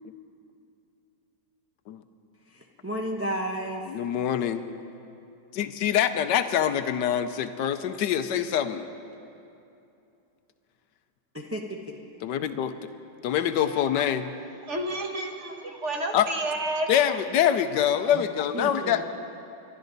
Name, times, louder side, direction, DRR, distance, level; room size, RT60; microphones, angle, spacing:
voice 1, 2.5-3.8 11.3-11.6 11.9-12.0 18.1-18.2 18.5-19.0, right 1 dB, 15° right, 0 dB, 0.5 m, -32 dB
voice 2, 3.9-4.6 5.5-8.8 12.2-12.8 13.2-14.3 16.1-16.3 16.9-19.0, left 9 dB, 80° left, 10 dB, 1.3 m, -25 dB
voice 3, 14.7-16.9, right 1 dB, 45° right, 2 dB, 1.4 m, -30 dB
29.0 x 12.5 x 4.0 m, 2.7 s
omnidirectional pair, 1.9 m